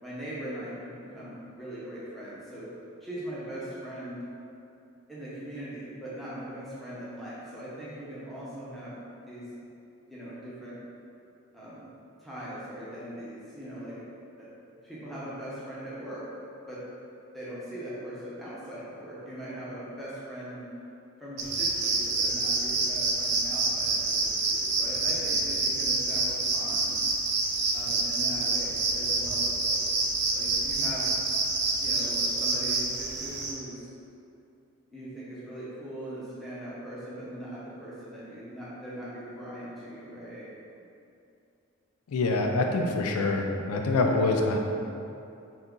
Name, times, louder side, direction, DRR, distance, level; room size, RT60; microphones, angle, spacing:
voice 1, 0.0-2.7 3.0-4.2 5.1-8.9 9.3-9.5 10.1-10.8 11.5-11.9 12.2-14.0 14.4-14.5 14.8-16.2 16.7-16.8 17.3-20.7 21.2-27.1 27.7-31.2 31.8-33.9 34.9-40.5, right 1 dB, ahead, -10 dB, 0.6 m, -40 dB
sound 1, 21.4-33.5, right 3 dB, 50° right, 0.3 m, -27 dB
voice 2, 42.1-44.6, left 2 dB, 85° left, 2 dB, 0.3 m, -25 dB
2.8 x 2.4 x 3.6 m, 2.7 s
head